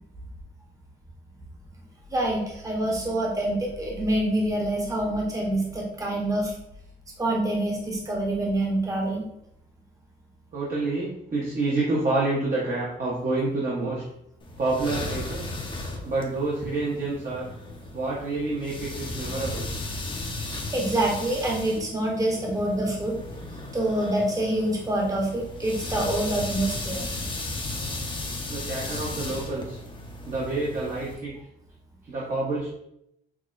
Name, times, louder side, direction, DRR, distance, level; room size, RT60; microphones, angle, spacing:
voice 1, 2.1-6.5 7.2-9.2 20.7-23.2 23.7-27.0 28.9-29.0, right 1 dB, 15° right, -1 dB, 0.9 m, -26 dB
voice 2, 10.5-14.0 14.6-15.5 16.0-17.5 17.9-19.7 28.5-29.8 30.3-31.3 32.0-32.7, right 2 dB, 45° right, -5 dB, 0.9 m, -28 dB
sound 1, 14.4-31.1, left 2 dB, 25° left, 0.7 m, -35 dB
6.0 x 2.1 x 2.5 m, 0.78 s
cardioid pair, 90°, 20 cm